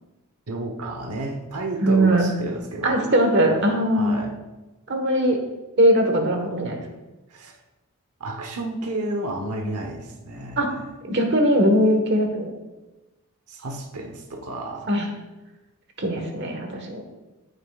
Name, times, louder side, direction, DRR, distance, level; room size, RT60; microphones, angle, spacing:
voice 1, 0.5-3.1 3.9-4.3 7.3-7.6 8.2-10.9 13.5-14.9, right 2 dB, 90° right, 3 dB, 1.0 m, -31 dB
voice 2, 1.8-2.3 2.8-4.2 4.9-5.4 5.8-6.8 10.6-10.7 11.0-12.6 14.9-15.1 16.0-17.0, right 1 dB, 50° right, 4 dB, 1.4 m, -20 dB
14.0 x 7.9 x 2.4 m, 1.1 s
head